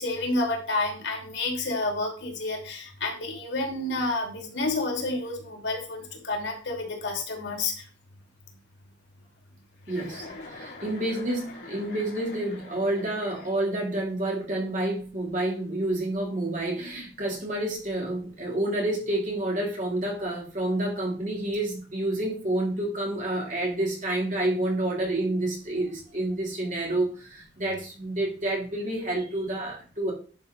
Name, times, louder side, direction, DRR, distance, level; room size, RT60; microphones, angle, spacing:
voice 1, 0.0-7.8, left 2 dB, 80° left, 1 dB, 2.7 m, -30 dB
Chuckle chortle, 9.8-13.9, left 3 dB, 60° left, 2.8 m, -44 dB
voice 2, 9.9-30.1, right 1 dB, 45° right, -2 dB, 3.2 m, -29 dB
10.5 x 5.2 x 4.0 m, 0.40 s
head